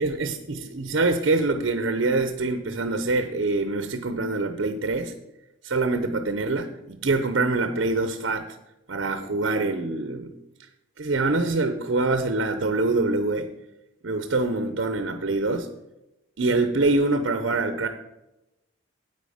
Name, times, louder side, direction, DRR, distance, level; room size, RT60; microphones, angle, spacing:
voice 1, 0.0-5.1 5.6-8.6 8.9-10.3 11.0-13.5 14.0-15.7 16.4-17.9, right 3 dB, 65° right, 9 dB, 0.7 m, -25 dB
9.5 x 8.5 x 5.0 m, 0.94 s
head